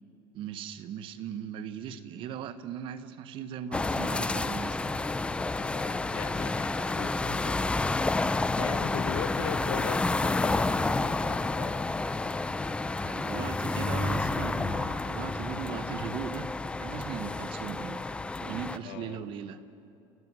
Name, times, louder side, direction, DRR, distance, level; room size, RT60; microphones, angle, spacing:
voice 1, 0.3-5.0 13.0-16.5 16.8-18.0 18.4-19.6, right 8 dB, 55° right, 12 dB, 1.1 m, -38 dB
sound 1, 3.7-18.8, left 3 dB, 10° left, 0.6 m, -30 dB
voice 2, 5.7-7.9 8.6-11.7 18.8-19.2, left 10 dB, 75° left, 11 dB, 1.2 m, -40 dB
29.5 x 15.0 x 6.2 m, 2.6 s
supercardioid pair, 120°, 11 cm